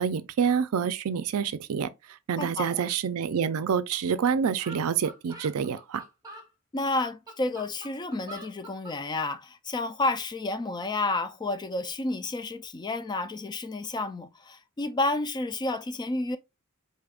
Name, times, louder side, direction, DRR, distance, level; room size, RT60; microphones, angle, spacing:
voice 1, 0.0-1.9 2.3-6.0, right 7 dB, 75° right, 0.4 m, -27 dB
voice 2, 2.3-2.8 6.7-16.4, left 2 dB, 20° left, 0.3 m, -30 dB
sound 1, 3.9-4.0 4.2-4.3 4.6-6.5 7.0-9.0, right 1 dB, 15° right, 1.0 m, -45 dB
4.9 x 2.7 x 2.3 m
head